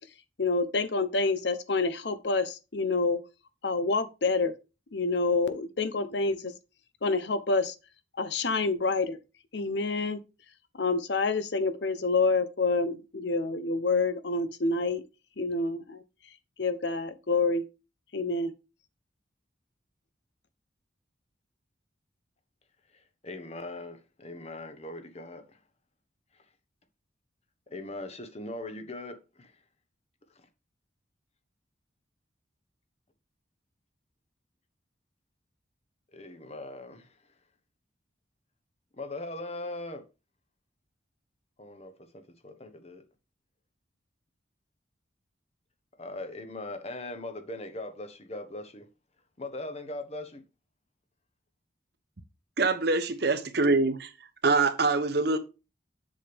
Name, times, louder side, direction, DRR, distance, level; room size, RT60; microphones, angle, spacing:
voice 1, 0.4-3.2 3.6-4.5 4.9-6.4 7.0-7.7 8.2-9.2 9.5-10.2 10.7-15.0 15.4-16.0 16.6-17.6 18.1-18.5, left 3 dB, 65° left, 0.8 m, -27 dB
voice 2, 23.2-25.6 27.7-29.5 36.1-37.1 39.0-40.1 41.6-43.0 46.0-48.9 49.4-50.4, left 2 dB, 35° left, 1.2 m, -40 dB
voice 3, 52.6-54.1 54.4-55.4, right 3 dB, 55° right, 1.0 m, -24 dB
7.5 x 7.0 x 3.5 m
head